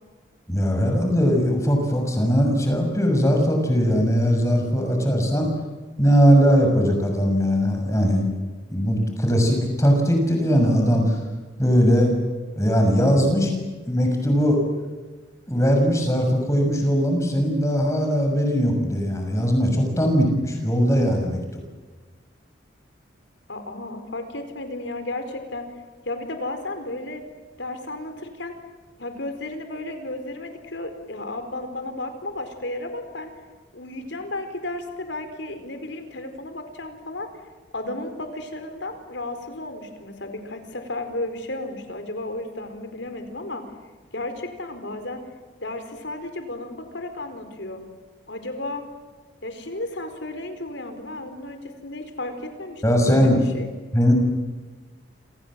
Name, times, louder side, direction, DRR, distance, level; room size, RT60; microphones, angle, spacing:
voice 1, 0.5-5.5 6.0-8.3 8.7-11.2 11.6-12.1 12.6-13.5 13.9-14.6 15.5-21.4 52.8-53.4 53.9-54.1, equal, 15° left, 2 dB, 6.5 m, -20 dB
voice 2, 23.5-25.7 26.0-27.2 27.6-28.5 29.0-33.3 33.7-37.3 37.7-43.7 44.1-45.2 45.6-47.8 48.3-48.8 49.4-53.7, left 2 dB, 70° left, 7 dB, 4.7 m, -33 dB
28.5 x 27.5 x 7.7 m, 1.3 s
head